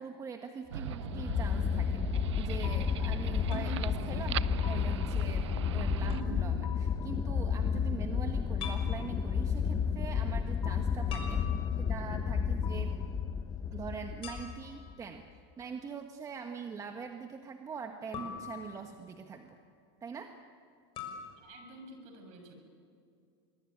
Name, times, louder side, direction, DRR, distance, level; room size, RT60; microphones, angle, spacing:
voice 1, 0.0-5.5 5.7-11.4 11.8-12.9 13.7-15.2 15.6-19.6 20.0-20.3, right 6 dB, 25° right, 5 dB, 1.4 m, -43 dB
sound 1, 0.7-6.2, right 13 dB, 85° right, 0.6 m, -40 dB
sound 2, 0.8-14.9, left 7 dB, 25° left, 1.0 m, -32 dB
sound 3, 3.5-3.7 6.1-6.3 8.6-8.9 11.1-12.0 14.2-14.8 18.1-19.1 21.0-21.3, left 5 dB, 40° left, 6.6 m, -42 dB
voice 2, 21.4-22.5, right 1 dB, 50° right, 5 dB, 7.0 m, -51 dB
25.0 x 22.0 x 10.0 m, 2.4 s
supercardioid pair, 120°, 14 cm